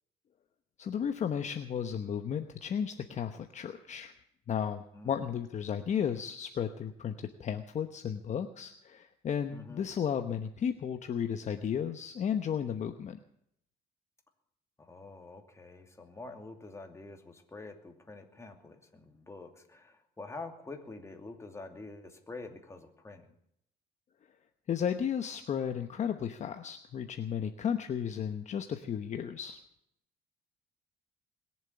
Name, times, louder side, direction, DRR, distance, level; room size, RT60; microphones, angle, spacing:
voice 1, 0.8-4.1 4.5-13.2 24.7-29.6, left 8 dB, 45° left, 7 dB, 1.0 m, -34 dB
voice 2, 9.5-9.8 14.8-23.3, left 3 dB, 15° left, 4 dB, 2.7 m, -47 dB
21.0 x 7.5 x 8.7 m, 0.72 s
cardioid pair, 110°, 17 cm